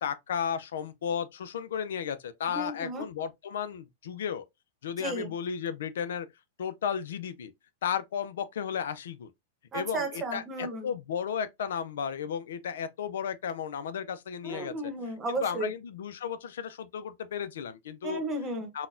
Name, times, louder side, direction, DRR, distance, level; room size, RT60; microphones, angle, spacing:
voice 1, 0.0-4.4 4.8-6.3 6.6-7.5 7.8-9.3 9.7-14.7 15.4-18.2 18.7-18.9, left 7 dB, 80° left, 0.4 m, -34 dB
voice 2, 2.5-3.0 5.0-5.3 9.7-10.9 14.4-15.7 18.0-18.7, right 2 dB, 25° right, 0.9 m, -34 dB
3.9 x 2.2 x 2.5 m
hypercardioid pair, 125°, 0 cm